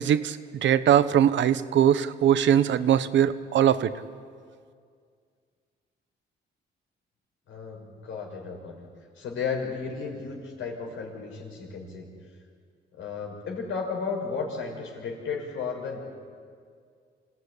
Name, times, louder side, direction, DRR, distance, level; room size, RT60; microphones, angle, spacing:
voice 1, 0.0-3.9, right 10 dB, 70° right, 13 dB, 1.1 m, -21 dB
voice 2, 7.5-8.9 9.2-12.1 13.0-16.0, left 5 dB, 80° left, 1 dB, 5.9 m, -34 dB
25.5 x 17.5 x 10.0 m, 2.1 s
cardioid pair, 90°, 20 cm